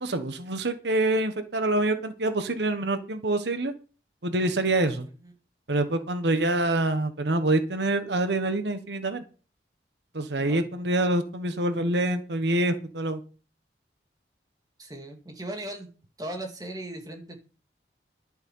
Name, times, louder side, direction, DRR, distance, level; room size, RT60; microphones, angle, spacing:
voice 1, 0.0-3.7 4.2-5.1 5.7-9.2 10.1-13.2, right 2 dB, 75° right, 9 dB, 1.3 m, -26 dB
voice 2, 14.8-15.9 16.2-17.5, right 1 dB, 20° right, 4 dB, 2.4 m, -38 dB
11.5 x 8.9 x 5.6 m, 0.36 s
head